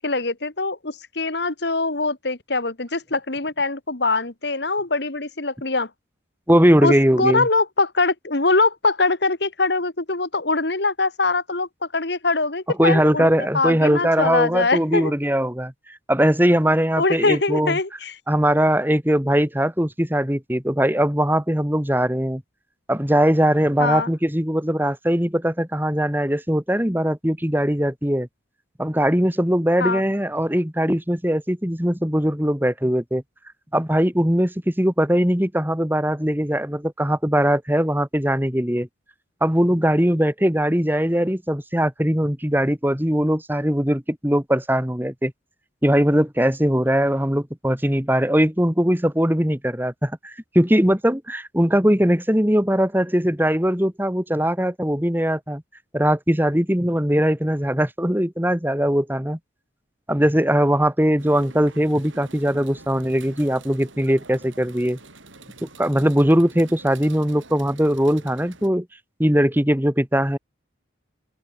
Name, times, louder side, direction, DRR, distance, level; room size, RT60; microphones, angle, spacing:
voice 1, 0.0-5.9 6.8-13.3 13.5-15.1 17.0-18.1 23.8-24.1 29.8-30.0, left 3 dB, 60° left, 1.9 m, -23 dB
voice 2, 6.5-7.5 12.8-17.8 18.3-22.4 22.9-28.3 28.8-33.2 33.7-38.9 39.4-45.3 45.8-55.6 55.9-59.4 60.1-65.0 65.6-68.9 69.2-70.4, equal, 10° right, 2.2 m, -20 dB
sound 1, 61.2-68.7, right 3 dB, 90° right, 6.7 m, -46 dB
open air
head